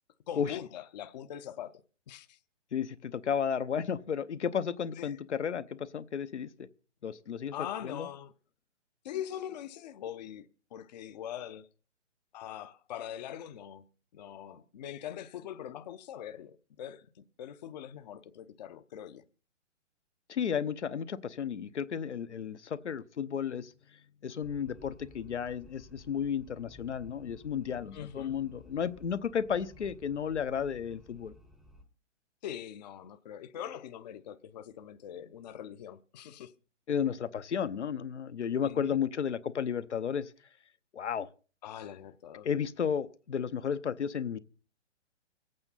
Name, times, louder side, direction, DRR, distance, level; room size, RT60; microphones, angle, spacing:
voice 1, 0.3-1.7 2.1-2.4 5.0-5.1 7.5-8.3 9.0-11.7 12.3-13.8 14.1-17.1 17.4-19.2 27.9-28.4 32.4-36.5 38.6-39.0 41.6-42.5, left 10 dB, 35° left, 0.7 m, -42 dB
voice 2, 2.7-6.7 7.0-7.5 7.8-8.1 20.3-23.7 24.2-31.3 36.9-40.3 40.9-41.3 42.4-44.4, left 7 dB, 70° left, 0.9 m, -33 dB
sound 1, 24.4-31.8, left 1 dB, ahead, 0.7 m, -56 dB
24.5 x 8.7 x 4.1 m
figure-of-eight pair, 135°, 36 cm